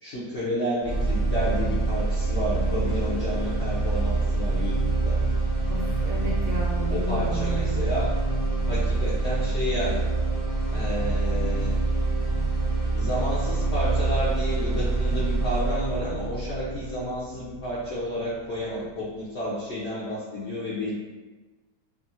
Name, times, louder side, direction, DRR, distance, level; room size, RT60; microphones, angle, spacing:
voice 1, 0.0-4.7 5.0-5.1 6.9-8.1 8.6-10.1 10.7-11.7 12.9-20.9, equal, 70° left, -8 dB, 0.6 m, -31 dB
sound 1, 0.8-18.8, right 3 dB, 20° left, 0.8 m, -26 dB
voice 2, 5.7-7.8, equal, 70° right, -4 dB, 0.9 m, -33 dB
2.8 x 2.3 x 2.7 m, 1.2 s
omnidirectional pair, 1.9 m